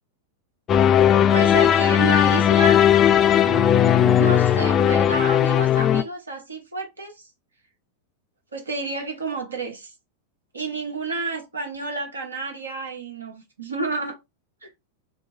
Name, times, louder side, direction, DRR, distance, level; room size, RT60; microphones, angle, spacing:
sound 1, 0.7-6.0, left 10 dB, 30° left, 0.3 m, -17 dB
voice 1, 1.3-2.9 3.4-7.3 8.5-9.9 10.5-14.2 14.6-14.7, right 3 dB, 75° right, 1.0 m, -30 dB
2.9 x 2.0 x 3.7 m
figure-of-eight pair, 90°, 0 cm